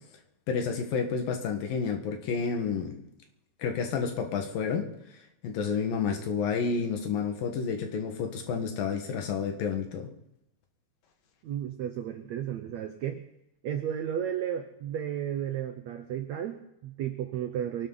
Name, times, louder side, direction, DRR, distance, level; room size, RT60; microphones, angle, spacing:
voice 1, 0.5-3.0 3.6-4.9 5.4-10.1, left 6 dB, 65° left, 5 dB, 3.1 m, -30 dB
voice 2, 11.4-13.2 13.6-17.9, right 10 dB, 80° right, 6 dB, 1.6 m, -33 dB
24.0 x 12.0 x 3.9 m, 0.85 s
omnidirectional pair, 4.5 m